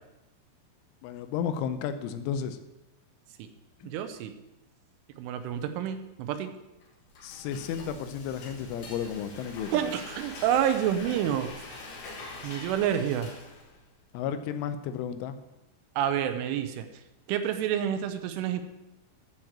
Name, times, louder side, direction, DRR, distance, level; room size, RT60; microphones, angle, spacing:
voice 1, 1.0-2.6 3.8-3.9 7.2-9.9 14.1-15.4, left 8 dB, 85° left, 9 dB, 3.2 m, -33 dB
voice 2, 3.8-4.3 5.2-6.5 9.7-11.5 12.4-13.3 16.0-16.9 17.3-18.6, right 10 dB, 85° right, 9 dB, 3.3 m, -28 dB
Frying (food), 6.8-13.9, left 3 dB, 60° left, 3.8 m, -44 dB
13.0 x 4.8 x 7.3 m, 0.95 s
omnidirectional pair, 5.5 m